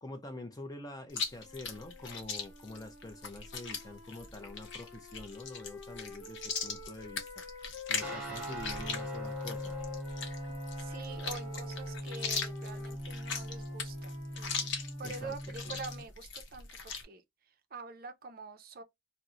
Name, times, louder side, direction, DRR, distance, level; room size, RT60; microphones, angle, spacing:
voice 1, 0.0-7.4 7.9-9.8 15.0-15.3 15.6-15.8, left 2 dB, 20° left, 0.4 m, -46 dB
Chewing mastication, 1.1-17.0, left 5 dB, 55° left, 0.7 m, -40 dB
sound 1, 1.3-8.2 8.9-16.1, left 6 dB, 85° left, 0.9 m, -49 dB
Guitar, 8.0-16.1, right 1 dB, 5° right, 0.9 m, -41 dB
voice 2, 10.8-14.7 15.0-17.2 17.7-18.8, right 4 dB, 45° right, 0.4 m, -46 dB
2.9 x 2.0 x 3.6 m
head